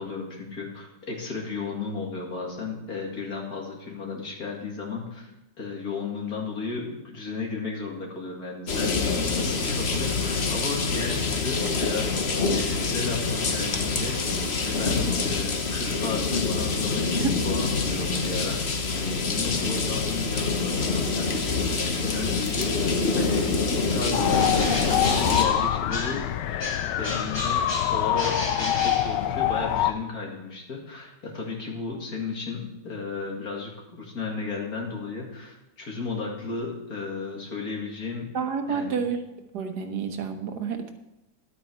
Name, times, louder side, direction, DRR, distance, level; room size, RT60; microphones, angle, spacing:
voice 1, 0.0-5.3 5.6-12.1 12.5-14.2 14.5-18.6 18.9-24.3 24.7-26.4 27.0-27.6 27.9-38.3 38.7-39.0, left 4 dB, 60° left, -1 dB, 2.8 m, -34 dB
sound 1, 8.7-25.4, left 4 dB, 45° left, 1.1 m, -26 dB
sound 2, 24.1-29.9, left 11 dB, 85° left, 1.3 m, -25 dB
Bird, 24.2-26.3 26.6-29.7, left 1 dB, 20° left, 1.1 m, -34 dB
voice 2, 38.3-39.2 39.5-40.9, right 6 dB, 70° right, 6 dB, 1.7 m, -29 dB
12.0 x 8.7 x 4.6 m, 0.94 s
omnidirectional pair, 1.8 m